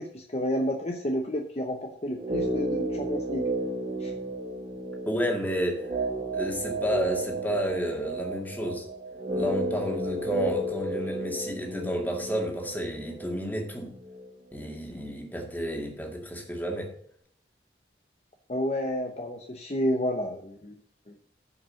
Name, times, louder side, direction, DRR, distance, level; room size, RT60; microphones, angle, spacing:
voice 1, 0.0-3.4 4.0-4.1 18.5-20.7 21.1-21.2, equal, 35° left, 3 dB, 0.9 m, -30 dB
sound 1, 2.2-14.3 14.5-14.6, right 1 dB, 40° right, 1.8 m, -33 dB
voice 2, 5.1-5.8 6.3-8.9 9.3-13.9 14.5-16.9, equal, 10° left, 1 dB, 2.1 m, -31 dB
9.5 x 5.4 x 6.5 m, 0.64 s
head